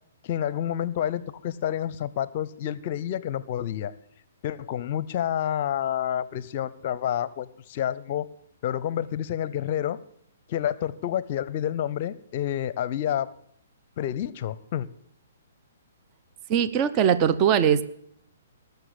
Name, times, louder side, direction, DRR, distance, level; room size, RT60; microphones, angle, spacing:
voice 1, 0.2-3.9 4.4-8.3 8.6-10.0 10.5-13.3 14.0-14.9, left 10 dB, 45° left, 18 dB, 0.6 m, -29 dB
voice 2, 16.5-17.8, right 8 dB, 30° right, 12 dB, 0.8 m, -21 dB
19.0 x 6.8 x 8.0 m, 0.69 s
figure-of-eight pair, 125°, 0 cm